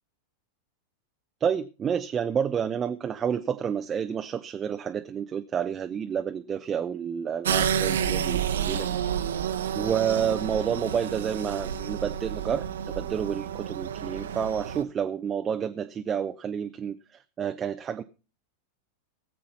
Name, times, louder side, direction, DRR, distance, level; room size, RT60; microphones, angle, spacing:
voice 1, 1.4-9.0 9.7-18.0, right 8 dB, 25° right, 0.6 m, -29 dB
sound 1, 7.4-14.8, right 8 dB, 65° right, 1.0 m, -30 dB
18.5 x 7.7 x 5.4 m
figure-of-eight pair, 90°, 0 cm